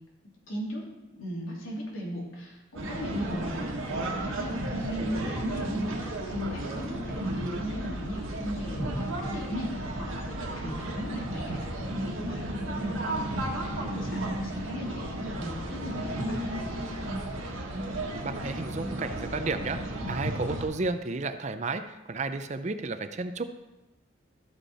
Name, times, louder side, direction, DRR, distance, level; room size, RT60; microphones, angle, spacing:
voice 1, 0.5-0.8 1.2-11.7 12.0-16.6, equal, 85° left, -4 dB, 2.9 m, -37 dB
sound 1, 2.8-20.7, right 1 dB, 80° right, 1.5 m, -33 dB
voice 2, 18.2-19.8 20.1-23.4, right 3 dB, 35° right, 10 dB, 0.5 m, -32 dB
13.5 x 5.5 x 4.3 m, 1.0 s
head